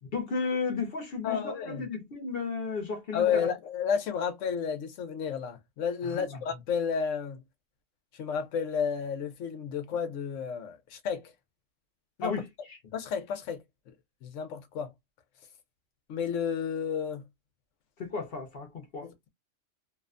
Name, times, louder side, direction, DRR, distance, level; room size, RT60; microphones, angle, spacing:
voice 1, 0.0-3.5 6.0-6.4 12.2-12.8 18.0-19.1, left 4 dB, 55° left, 0.8 m, -34 dB
voice 2, 1.2-1.9 3.1-7.4 8.1-11.3 12.2-12.3 12.9-13.6 14.2-14.9 16.1-17.2, left 7 dB, 85° left, 1.0 m, -31 dB
2.7 x 2.1 x 2.4 m
omnidirectional pair, 1.3 m